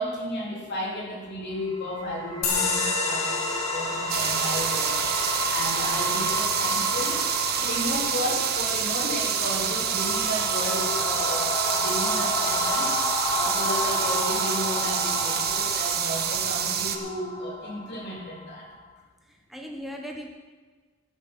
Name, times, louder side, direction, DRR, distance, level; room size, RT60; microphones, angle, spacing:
voice 1, 0.0-5.0 5.5-7.2 7.6-13.0 13.3-18.7, equal, 55° left, -2 dB, 3.1 m, -33 dB
sound 1, 1.6-18.8, left 1 dB, 20° left, 1.7 m, -31 dB
sound 2, 2.4-9.5, left 3 dB, 90° left, 2.1 m, -32 dB
sound 3, 4.1-17.0, right 8 dB, 50° right, 1.0 m, -27 dB
voice 2, 19.2-20.3, equal, ahead, 1 dB, 0.8 m, -39 dB
14.5 x 8.0 x 5.9 m, 1.4 s
head